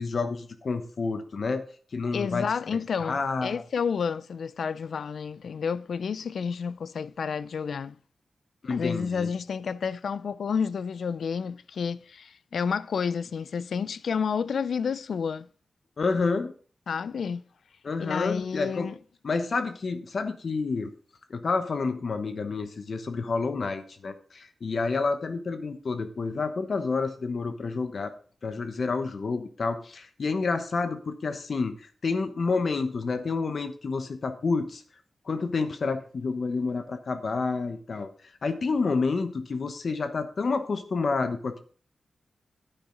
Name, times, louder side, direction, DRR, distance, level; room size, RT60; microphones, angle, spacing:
voice 1, 0.0-1.6 1.9-2.5 3.0-3.6 8.6-9.3 16.0-16.5 17.8-18.9 19.2-20.9 21.3-28.1 28.4-34.8 35.3-38.1 38.4-41.6, left 4 dB, 60° left, 1.0 m, -29 dB
voice 2, 2.1-8.0 8.7-15.5 16.9-17.4 18.0-19.0, left 6 dB, 80° left, 0.4 m, -30 dB
10.0 x 9.1 x 3.9 m
cardioid pair, 80°, 0 cm